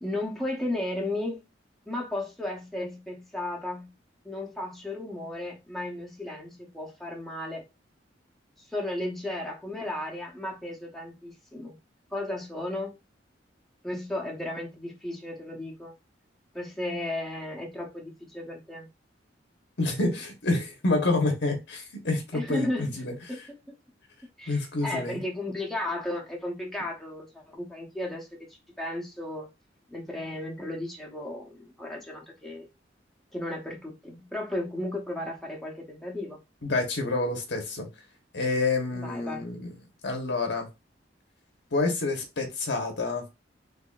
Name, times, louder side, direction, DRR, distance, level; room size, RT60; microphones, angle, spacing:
voice 1, 0.0-1.4 1.9-3.9 4.2-7.6 8.6-11.8 12.1-12.9 13.8-15.9 16.5-18.9 22.3-22.9 23.3-23.4 23.7-23.8 24.4-28.4 28.8-29.5 29.9-32.7 33.3-36.4 38.9-39.5, left 1 dB, ahead, 0.9 m, -34 dB
voice 2, 19.8-23.4 24.5-25.2 36.6-37.9 38.3-39.8 40.0-40.7 41.7-43.2, left 2 dB, 70° left, 1.0 m, -28 dB
3.5 x 3.3 x 2.4 m
head